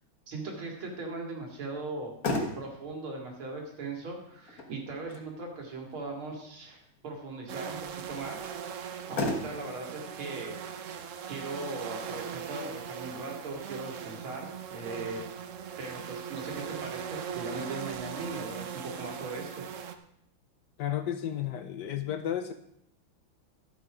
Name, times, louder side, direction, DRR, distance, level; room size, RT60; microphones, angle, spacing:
voice 1, 0.3-2.1 2.6-10.6 11.3-15.3 15.8-19.6, right 3 dB, 85° right, 0 dB, 3.1 m, -39 dB
Motor vehicle (road), 1.8-14.8, left 2 dB, 50° left, 1.6 m, -40 dB
sound 1, 7.5-20.0, right 8 dB, 65° right, 0.7 m, -40 dB
voice 2, 20.8-22.5, left 10 dB, 65° left, 9 dB, 1.2 m, -32 dB
12.5 x 7.9 x 5.0 m, 0.74 s
omnidirectional pair, 2.3 m